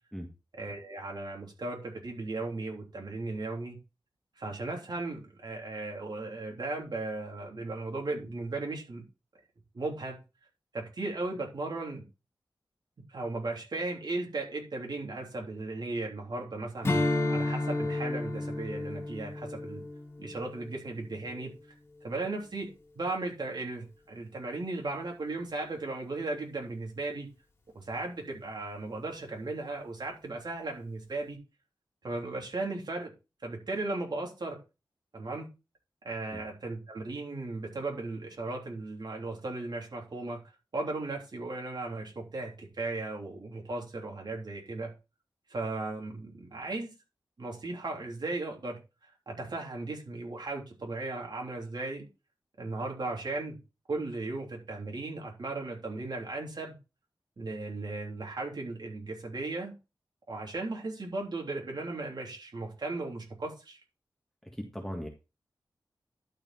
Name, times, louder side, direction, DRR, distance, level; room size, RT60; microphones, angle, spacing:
voice 1, 0.5-3.8 4.4-9.0 9.7-10.2 10.7-12.0 13.1-19.8 20.2-21.5 22.0-27.3 27.7-31.4 32.0-33.1 33.4-34.6 35.1-35.5 36.0-40.4 40.7-44.9 45.5-46.9 47.4-48.8 49.3-52.1 52.6-53.5 53.9-56.7 57.4-59.7 60.3-63.8, right 2 dB, 60° right, 0 dB, 3.4 m, -36 dB
Strum, 16.8-21.5, left 2 dB, 30° left, 2.5 m, -32 dB
voice 2, 64.6-65.1, equal, 5° left, 1 dB, 1.8 m, -37 dB
12.0 x 5.0 x 4.3 m, 0.28 s
wide cardioid pair, 115°, 8 cm